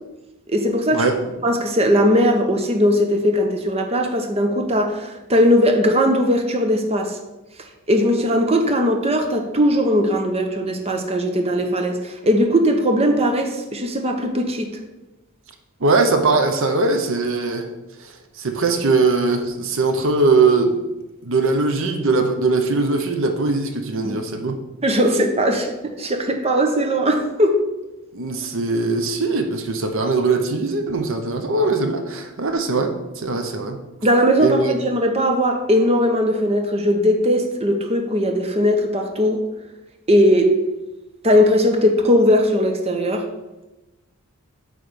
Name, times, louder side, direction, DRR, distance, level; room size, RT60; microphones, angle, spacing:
voice 1, 0.5-1.1 1.4-7.2 7.9-14.7 24.0-24.2 24.8-27.6 34.0-39.4 40.1-40.6 41.2-43.3, equal, 25° right, 4 dB, 0.8 m, -19 dB
voice 2, 15.8-17.7 18.0-20.8 21.2-24.6 28.1-33.8 34.4-34.7, right 3 dB, 60° right, 6 dB, 0.8 m, -20 dB
8.9 x 3.3 x 6.7 m, 1.0 s
head